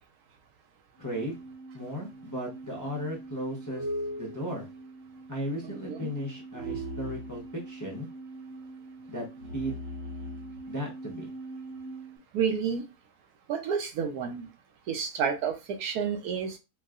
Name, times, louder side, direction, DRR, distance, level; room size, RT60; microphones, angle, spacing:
voice 1, 1.0-1.4 1.7-3.9 4.2-4.7 5.3-8.1 9.1-9.8 10.7-11.3, equal, 25° left, -2 dB, 0.4 m, -35 dB
sound 1, 1.0-12.2, right 1 dB, 55° right, 0.9 m, -41 dB
voice 2, 5.6-6.1 12.3-12.8 13.5-14.5 14.9-16.6, right 7 dB, 90° right, 6 dB, 1.2 m, -30 dB
4.4 x 2.1 x 2.4 m, 0.26 s
omnidirectional pair, 1.6 m